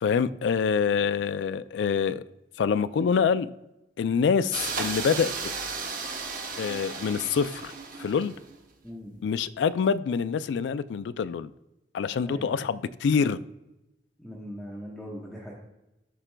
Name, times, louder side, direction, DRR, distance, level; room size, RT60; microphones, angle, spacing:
voice 1, 0.0-2.2 2.6-3.5 4.0-5.3 6.6-7.7 8.0-8.4 9.2-11.5 11.9-13.4, left 6 dB, 75° left, 0.3 m, -26 dB
sound 1, 4.5-8.6, right 4 dB, 50° right, 1.0 m, -34 dB
voice 2, 8.8-9.1 12.2-12.5 14.2-15.5, equal, ahead, 1.0 m, -40 dB
11.5 x 5.0 x 2.2 m
head